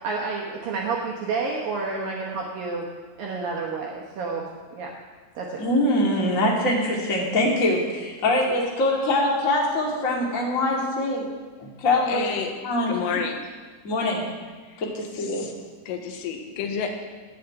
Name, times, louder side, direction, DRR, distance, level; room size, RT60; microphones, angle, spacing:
voice 1, 0.0-2.9 3.2-4.9 5.4-5.6, right 4 dB, 70° right, -2 dB, 2.2 m, -30 dB
voice 2, 5.6-11.2 11.6-12.3 12.6-13.0 13.8-14.2 14.8-15.5, left 1 dB, 50° left, -2 dB, 0.9 m, -23 dB
voice 3, 12.1-12.5 12.9-13.4 14.6-14.8 15.2-15.5 15.9-17.0, left 6 dB, 90° left, 4 dB, 3.9 m, -30 dB
10.5 x 9.4 x 9.1 m, 1.4 s
omnidirectional pair, 5.7 m